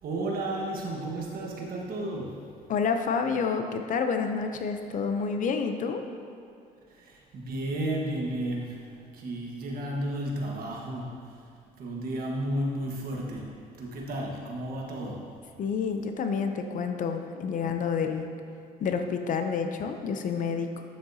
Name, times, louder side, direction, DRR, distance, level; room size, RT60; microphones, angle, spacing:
voice 1, 0.0-2.4 6.9-11.5 11.8-15.2, right 1 dB, 60° right, -1 dB, 1.4 m, -33 dB
voice 2, 2.7-6.0 15.6-18.3 18.8-20.8, left 5 dB, 50° left, 6 dB, 0.6 m, -29 dB
9.2 x 7.5 x 2.7 m, 2.4 s
cardioid pair, 110°, 17 cm